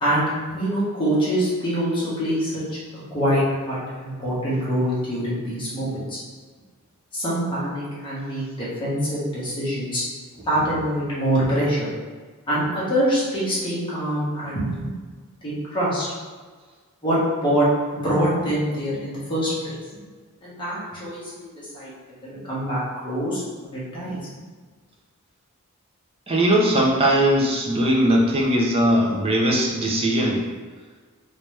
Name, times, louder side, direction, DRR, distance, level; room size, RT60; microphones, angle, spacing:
voice 1, 0.0-6.2 7.1-10.0 10.4-11.9 12.5-14.9 15.4-16.0 17.0-17.7 17.9-20.0 20.4-21.9 22.2-23.4 23.7-24.2, equal, 20° left, -9 dB, 1.3 m, -25 dB
voice 2, 26.3-30.4, right 1 dB, 25° right, -2 dB, 0.5 m, -19 dB
3.1 x 3.1 x 3.2 m, 1.5 s
head